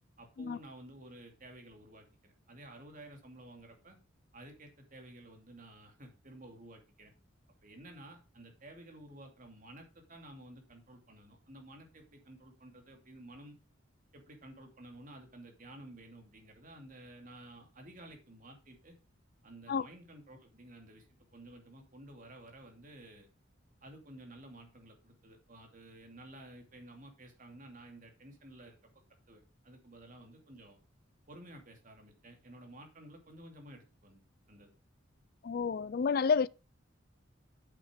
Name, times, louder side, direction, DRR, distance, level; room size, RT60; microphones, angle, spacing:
voice 1, 0.2-4.0 4.3-7.1 7.6-13.6 14.1-18.9 19.4-21.1 21.3-23.3 23.8-28.8 29.3-30.8 31.3-34.2 34.5-34.8, right 1 dB, 45° right, 2.6 m, -53 dB
voice 2, 35.4-36.5, left 5 dB, 50° left, 0.4 m, -30 dB
8.5 x 7.2 x 5.0 m
head